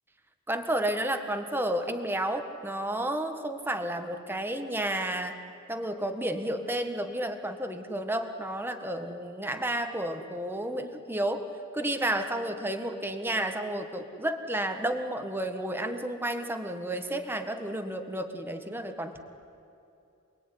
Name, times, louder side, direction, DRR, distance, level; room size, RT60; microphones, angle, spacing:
voice 1, 0.5-5.4 5.7-11.5 11.7-19.2, right 1 dB, 10° right, 6 dB, 1.6 m, -31 dB
28.0 x 21.0 x 9.9 m, 2.7 s
head